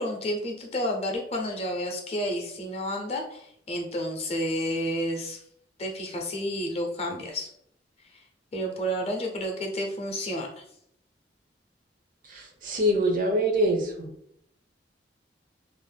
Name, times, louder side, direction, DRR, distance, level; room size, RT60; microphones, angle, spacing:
voice 1, 0.0-5.4 5.8-7.5 8.1-8.2 8.5-10.6, equal, 35° left, 1 dB, 0.6 m, -30 dB
voice 2, 12.3-14.1, equal, 50° right, 4 dB, 0.5 m, -25 dB
2.5 x 2.1 x 3.3 m, 0.72 s
head